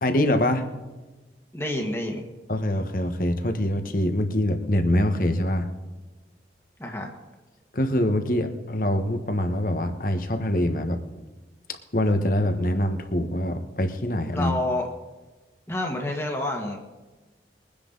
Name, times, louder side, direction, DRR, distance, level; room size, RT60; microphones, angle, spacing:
voice 1, 0.0-0.6 2.5-5.7 7.7-11.0 11.9-14.5, left 1 dB, 50° left, 7 dB, 1.3 m, -24 dB
voice 2, 1.5-2.3 6.8-7.1 14.3-14.9 15.7-16.8, left 1 dB, 15° left, 1 dB, 1.7 m, -28 dB
22.0 x 10.0 x 4.0 m, 1.2 s
head